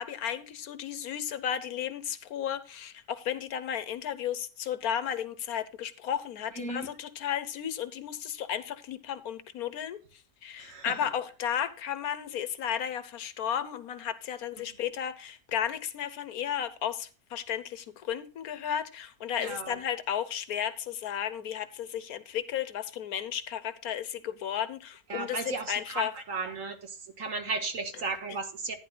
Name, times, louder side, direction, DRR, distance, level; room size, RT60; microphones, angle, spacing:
voice 1, 0.0-10.0 10.4-26.2, left 9 dB, 75° left, 1.4 m, -34 dB
voice 2, 6.6-6.9 10.6-11.0 14.6-14.7 19.4-19.8 25.1-26.9 27.2-28.8, right 3 dB, 60° right, 1.8 m, -35 dB
15.0 x 10.0 x 2.3 m
omnidirectional pair, 1.6 m